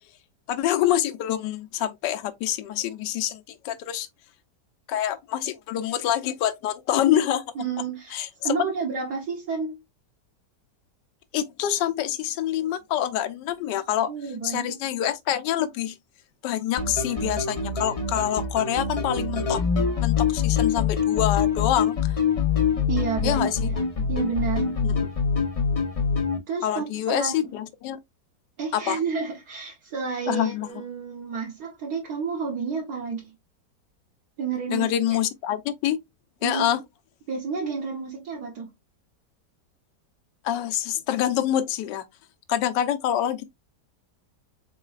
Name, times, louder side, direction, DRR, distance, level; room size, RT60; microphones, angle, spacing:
voice 1, 0.5-4.1 4.9-7.4 8.1-8.5 11.3-14.1 14.4-16.0 16.4-19.6 20.0-22.2 23.2-23.7 24.8-24.9 26.6-28.0 28.7-29.0 30.3-30.7 34.7-36.0 36.4-36.8 40.4-42.0 42.5-43.4, left 11 dB, 85° left, 1.2 m, -26 dB
voice 2, 7.5-9.8 14.1-14.7 22.9-24.8 26.5-27.5 28.6-33.3 34.4-35.2 36.4-36.7 37.3-38.7, right 5 dB, 70° right, 1.4 m, -31 dB
sound 1, 16.8-26.4, left 6 dB, 55° left, 0.4 m, -25 dB
4.1 x 3.6 x 2.3 m
omnidirectional pair, 1.9 m